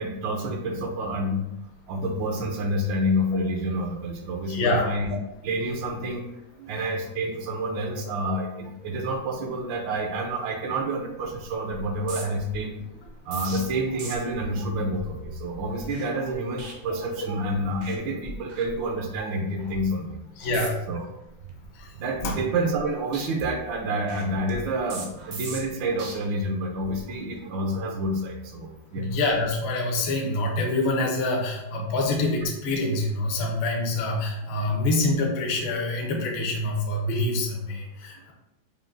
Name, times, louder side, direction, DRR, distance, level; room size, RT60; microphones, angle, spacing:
voice 1, 0.0-1.5 1.9-5.2 5.4-6.3 6.6-12.7 13.3-20.2 20.9-21.0 21.9-29.1 32.1-32.2, right 1 dB, 80° right, 3 dB, 1.3 m, -28 dB
voice 2, 4.5-4.9 20.4-20.8 21.7-21.9 22.2-22.4 28.9-38.3, left 2 dB, 60° left, 0 dB, 0.7 m, -26 dB
sound 1, 11.1-11.4 11.7-17.4 17.7-18.0 18.2-19.2 19.6-19.9 20.4-21.0 21.4-22.9 23.1-26.1 26.7-27.0, right 3 dB, 65° right, 0.7 m, -41 dB
5.1 x 2.7 x 2.5 m, 0.88 s
omnidirectional pair, 2.1 m